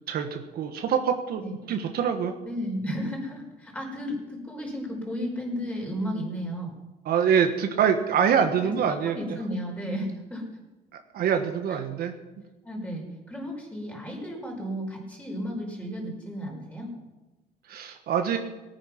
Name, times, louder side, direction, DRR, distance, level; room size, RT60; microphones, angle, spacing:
voice 1, 0.1-1.4 1.7-2.3 7.0-9.4 11.1-12.1 17.7-18.4, right 7 dB, 65° right, 6 dB, 1.4 m, -25 dB
voice 2, 2.5-6.7 8.6-8.7 9.0-10.5 12.6-16.9, equal, 10° left, 0 dB, 5.1 m, -33 dB
18.5 x 9.3 x 5.8 m, 1.1 s
cardioid pair, 110°, 17 cm